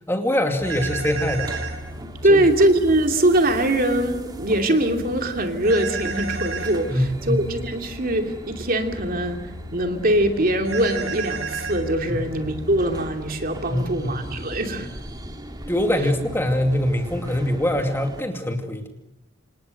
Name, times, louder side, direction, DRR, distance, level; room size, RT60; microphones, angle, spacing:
voice 1, 0.1-1.5 2.3-2.4 6.9-7.4 12.1-12.3 13.7-14.2 15.7-18.9, left 1 dB, 10° left, 4 dB, 2.5 m, -23 dB
sound 1, 0.6-17.6, equal, 55° left, 5.1 m, -39 dB
sound 2, 0.6-18.2, right 1 dB, 20° right, 2.6 m, -41 dB
sound 3, 0.6-1.8 5.6-6.8 10.6-11.8, right 6 dB, 85° right, 7.6 m, -31 dB
voice 2, 2.2-14.9, right 1 dB, 45° right, 4 dB, 2.8 m, -22 dB
27.5 x 27.5 x 6.6 m, 0.87 s
head